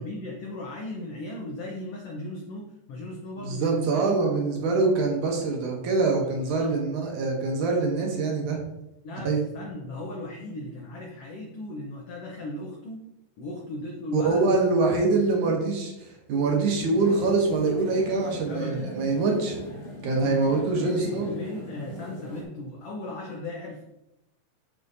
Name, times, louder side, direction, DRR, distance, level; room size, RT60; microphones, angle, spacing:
voice 1, 0.0-4.2 6.2-6.7 9.0-13.0 13.4-14.6 14.9-15.6 18.5-18.9 20.2-23.8, left 1 dB, 85° left, -2 dB, 1.3 m, -37 dB
voice 2, 3.4-8.6 9.3-9.4 14.1-19.6 20.0-21.3, right 3 dB, 70° right, 1 dB, 2.2 m, -24 dB
sound 1, 16.9-22.4, left 1 dB, 45° left, 0.9 m, -39 dB
6.8 x 6.5 x 2.7 m, 0.88 s
omnidirectional pair, 4.1 m